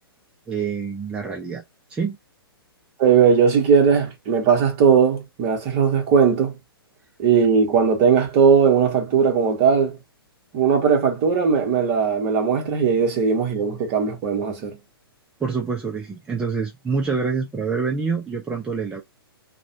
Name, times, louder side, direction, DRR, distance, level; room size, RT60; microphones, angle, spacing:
voice 1, 0.5-1.6 1.9-2.2 15.4-19.0, right 5 dB, 5° right, 0.4 m, -26 dB
voice 2, 3.0-6.6 7.2-10.0 10.5-14.8, right 6 dB, 35° right, 1.0 m, -18 dB
2.6 x 2.2 x 2.8 m
figure-of-eight pair, 115°, 13 cm